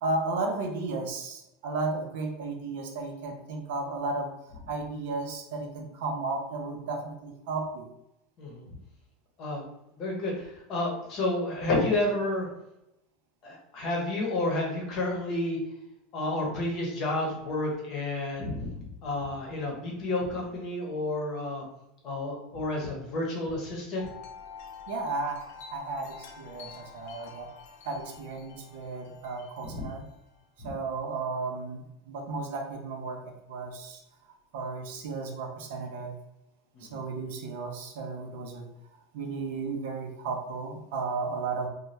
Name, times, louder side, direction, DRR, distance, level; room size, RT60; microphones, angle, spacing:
voice 1, 0.0-4.3 4.7-7.9 24.9-27.5 27.9-30.0 30.6-34.0 34.5-36.2 36.8-38.7 39.1-41.7, right 3 dB, 70° right, 3 dB, 0.5 m, -34 dB
voice 2, 8.4-8.7 9.4-9.6 9.9-12.5 13.4-15.6 16.1-21.6 22.0-24.1 29.7-29.9 30.6-30.7 36.7-37.0, left 2 dB, 40° left, 0 dB, 0.8 m, -30 dB
Wind chime, 24.0-30.5, left 6 dB, 65° left, 0.5 m, -48 dB
2.7 x 2.2 x 3.1 m, 0.87 s
supercardioid pair, 160°, 0 cm